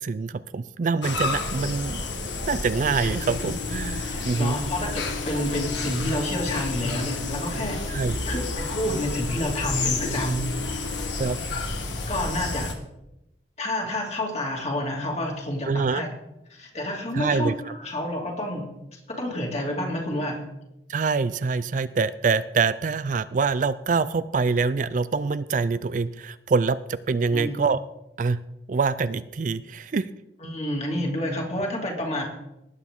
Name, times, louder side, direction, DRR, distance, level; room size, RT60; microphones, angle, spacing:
voice 1, 0.0-2.0 2.5-4.6 7.9-8.2 11.2-11.4 15.7-16.0 17.1-17.5 20.9-27.8 28.2-28.4 28.7-30.1, right 4 dB, 45° right, 15 dB, 0.4 m, -25 dB
sound 1, 1.0-12.7, left 3 dB, 90° left, 1.7 m, -30 dB
voice 2, 4.0-7.8 8.2-11.0 12.1-12.7 13.6-16.1 16.5-20.4 27.3-27.6 30.4-32.2, left 1 dB, 35° left, 0 dB, 2.6 m, -29 dB
19.0 x 8.4 x 3.7 m, 0.89 s
head